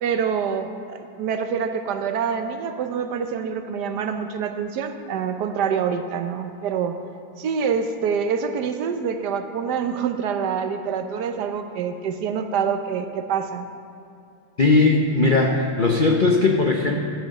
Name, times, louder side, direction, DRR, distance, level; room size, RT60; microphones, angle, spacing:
voice 1, 0.0-7.0 7.4-13.7, right 6 dB, 65° right, 7 dB, 1.2 m, -26 dB
voice 2, 14.6-17.0, left 3 dB, 60° left, 1 dB, 0.5 m, -18 dB
11.5 x 8.1 x 6.5 m, 2.6 s
omnidirectional pair, 2.0 m